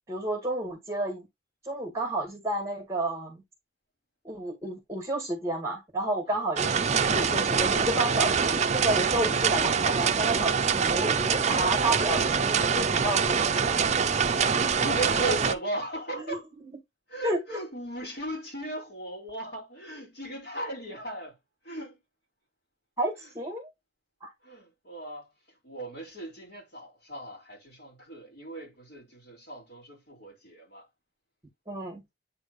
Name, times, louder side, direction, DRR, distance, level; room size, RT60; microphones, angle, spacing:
voice 1, 0.1-1.3 1.6-3.4 4.2-13.8 15.3-15.4 16.1-16.8 17.2-17.6 23.0-23.7 24.2-24.3 31.7-32.0, right 1 dB, 15° right, 2.0 m, -31 dB
sound 1, 6.6-15.5, right 6 dB, 35° right, 0.5 m, -25 dB
voice 2, 14.8-16.4 17.1-21.3 21.6-22.0 24.4-25.3 25.6-30.8, right 1 dB, 60° left, 4.9 m, -37 dB
8.8 x 3.8 x 3.1 m
head